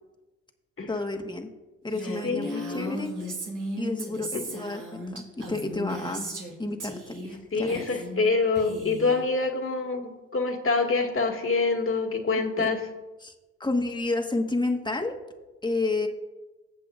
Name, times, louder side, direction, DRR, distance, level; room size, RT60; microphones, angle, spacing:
voice 1, 0.9-1.5 1.8-3.1 3.8-6.3 6.6-7.9 12.6-12.7 13.2-13.3 13.6-15.2 15.6-16.1, left 2 dB, 15° left, 3 dB, 1.4 m, -30 dB
Female speech woman speaking, 1.9-6.5 6.8-7.4 7.6-8.3 8.5-9.2, right 1 dB, 75° right, 2.7 m, -36 dB
voice 2, 2.2-3.2 7.5-12.8, left 4 dB, 45° left, 2 dB, 1.9 m, -26 dB
18.5 x 7.6 x 2.5 m, 1.2 s
supercardioid pair, 55°, 31 cm